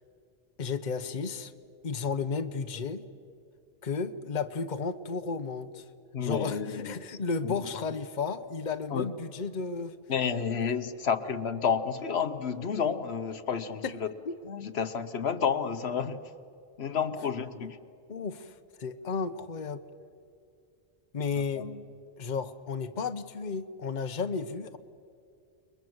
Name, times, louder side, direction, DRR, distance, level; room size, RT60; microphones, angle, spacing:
voice 1, 0.6-1.5 1.8-3.0 3.8-5.8 6.2-9.9 13.8-13.9 14.2-14.4 17.5-17.7 18.1-18.5 18.8-19.8 21.1-21.6 22.2-24.8, left 5 dB, 45° left, 9 dB, 1.1 m, -33 dB
voice 2, 6.1-7.2 7.4-7.6 8.9-9.1 10.1-14.1 14.4-16.2 16.8-17.8 21.6-21.8, left 6 dB, 80° left, 10 dB, 1.3 m, -30 dB
29.5 x 22.0 x 7.9 m, 2.4 s
omnidirectional pair, 1.1 m